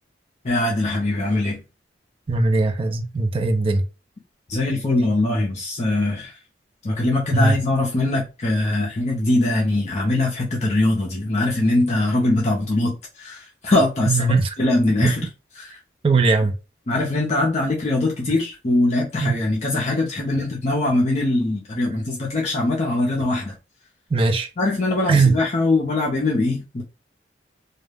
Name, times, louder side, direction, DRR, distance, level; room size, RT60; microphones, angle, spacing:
voice 1, 0.4-1.6 4.5-6.3 6.8-14.2 14.6-15.2 16.9-23.5 24.6-26.8, left 2 dB, 35° left, 0.5 m, -22 dB
voice 2, 2.3-3.8 7.3-7.6 14.1-14.5 15.0-15.1 16.0-16.5 19.2-19.4 24.1-24.5 25.1-25.4, right 3 dB, 30° right, 0.3 m, -19 dB
2.3 x 2.0 x 3.2 m
head